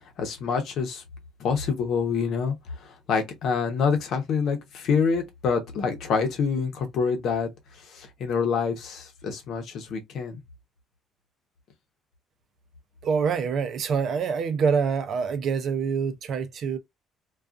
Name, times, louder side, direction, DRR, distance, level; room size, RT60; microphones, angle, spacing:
voice 1, 0.2-1.0 1.4-7.5 7.9-10.4, left 5 dB, 65° left, 0.8 m, -26 dB
voice 2, 13.0-16.8, right 6 dB, 50° right, 0.5 m, -26 dB
2.3 x 2.3 x 2.4 m
cardioid pair, 130°, 0 cm